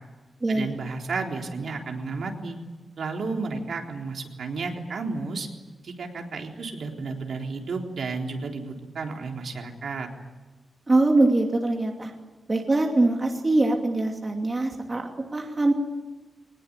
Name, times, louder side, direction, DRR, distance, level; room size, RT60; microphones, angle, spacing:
voice 1, 0.5-2.6 3.0-5.5 5.8-10.1, right 4 dB, 65° right, 2 dB, 3.9 m, -32 dB
voice 2, 10.9-12.1 12.5-15.7, right 2 dB, 25° right, 1 dB, 2.7 m, -23 dB
24.0 x 20.0 x 9.9 m, 1.2 s
wide cardioid pair, 155°, 0 cm